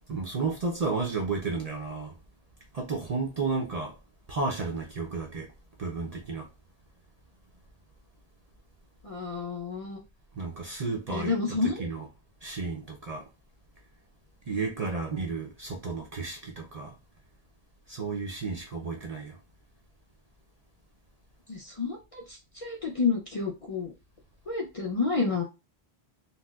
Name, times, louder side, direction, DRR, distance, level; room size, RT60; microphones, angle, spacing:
voice 1, 0.1-2.2 2.7-4.0 4.3-5.5 5.8-6.5 10.3-12.1 12.4-13.3 14.5-16.9 17.9-19.4, right 4 dB, 50° right, 0.5 m, -32 dB
voice 2, 9.0-10.0 11.1-11.9 21.5-23.9 24.5-25.4, left 4 dB, 40° left, 0.6 m, -30 dB
4.0 x 2.0 x 2.3 m
omnidirectional pair, 1.1 m